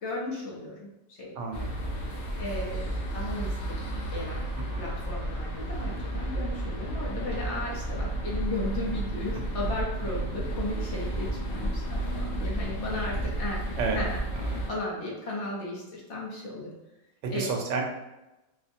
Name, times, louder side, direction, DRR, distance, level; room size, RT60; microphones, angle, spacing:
voice 1, 0.0-1.4 2.4-3.8 4.1-4.5 4.8-13.6 13.9-14.2 14.5-16.7 17.3-17.5, left 2 dB, 55° left, -4 dB, 0.9 m, -35 dB
voice 2, 1.3-1.9 4.7-4.9 13.8-14.0 17.2-17.8, right 4 dB, 80° right, 0 dB, 1.3 m, -31 dB
sound 1, 1.5-14.7, right 1 dB, 70° left, 0.6 m, -32 dB
4.3 x 2.1 x 2.7 m, 0.98 s
omnidirectional pair, 1.9 m